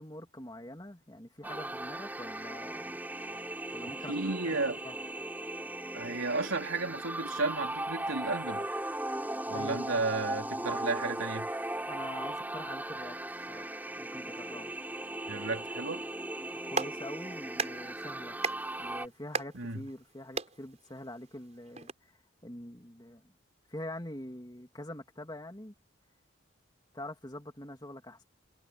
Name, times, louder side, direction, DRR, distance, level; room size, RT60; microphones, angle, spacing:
voice 1, 0.0-3.0 3.7-4.6 4.8-5.0 9.5-10.8 11.9-13.2 13.5-14.7 16.5-18.4 18.8-23.3 23.7-25.7 26.9-28.2, left 1 dB, 20° left, 2.7 m, -45 dB
sound 1, 1.4-19.1, right 1 dB, 10° right, 4.7 m, -38 dB
voice 2, 4.1-4.8 5.9-8.8 9.5-11.5 15.3-16.0 19.5-19.8, right 3 dB, 85° right, 3.3 m, -33 dB
Clapping, 16.4-21.9, right 4 dB, 35° right, 5.6 m, -39 dB
head